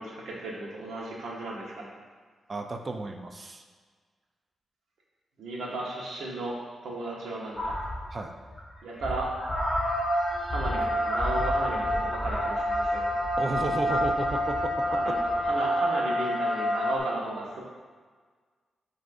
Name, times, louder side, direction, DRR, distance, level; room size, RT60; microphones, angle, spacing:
voice 1, 0.0-1.9 5.4-6.6 6.8-7.8 8.8-9.3 10.5-13.2 14.8-17.6, right 2 dB, 85° right, -3 dB, 1.0 m, -34 dB
voice 2, 2.5-3.6 8.1-8.3 13.4-15.1, right 3 dB, 35° right, 4 dB, 0.4 m, -33 dB
sound 1, 7.6-8.1 8.5-8.7 9.0-17.0, equal, 15° left, 1.0 m, -28 dB
7.6 x 2.7 x 2.5 m, 1.5 s
cardioid pair, 85°, 0 cm